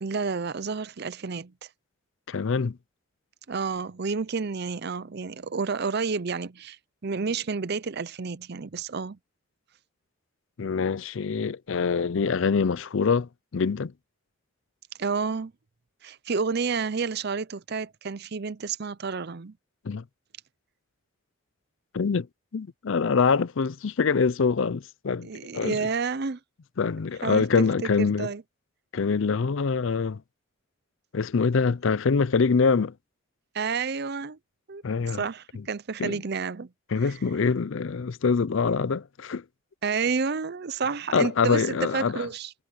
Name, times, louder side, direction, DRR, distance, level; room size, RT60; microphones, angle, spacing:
voice 1, 0.0-1.5 3.5-9.2 15.0-15.5 16.0-19.5 25.2-26.4 27.2-27.4 28.0-28.4 33.5-34.4 34.7-34.8 35.1-36.7 39.8-42.5, right 5 dB, 50° right, 0.6 m, -30 dB
voice 2, 2.3-2.8 10.6-13.9 19.8-20.0 21.9-22.3 22.5-25.8 26.8-28.3 28.9-30.2 31.1-32.9 34.8-35.2 35.6-35.7 36.0-36.2 36.9-39.4 41.1-42.3, left 5 dB, 60° left, 0.5 m, -25 dB
head